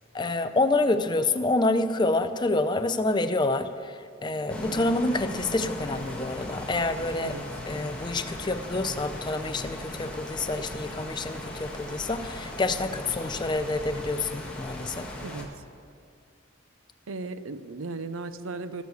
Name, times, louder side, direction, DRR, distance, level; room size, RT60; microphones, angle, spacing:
voice 1, 0.1-7.3 7.7-15.1, left 2 dB, 20° left, 10 dB, 0.5 m, -27 dB
sound 1, 4.5-15.4, left 1 dB, 5° left, 1.7 m, -38 dB
voice 2, 17.1-18.8, right 3 dB, 90° right, 12 dB, 0.7 m, -36 dB
19.0 x 6.5 x 6.9 m, 2.3 s
head